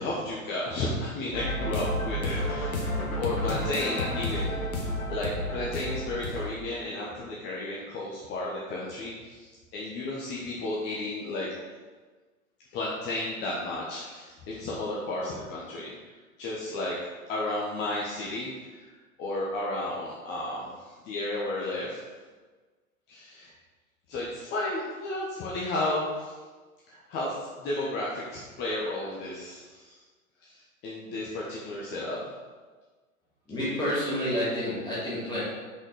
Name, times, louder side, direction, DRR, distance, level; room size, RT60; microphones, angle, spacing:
voice 1, 0.0-11.5 12.7-15.9 16.4-17.0 17.3-18.8 19.2-22.0 23.1-23.5 24.1-26.3 26.9-29.9 30.4-30.6 30.8-32.2, left 2 dB, 25° left, -5 dB, 1.1 m, -33 dB
sound 1, 1.3-6.5, left 1 dB, 75° left, 1.5 m, -31 dB
voice 2, 33.5-35.4, left 1 dB, 10° left, -11 dB, 2.2 m, -29 dB
6.1 x 5.5 x 4.9 m, 1.4 s
figure-of-eight pair, 100°, 42 cm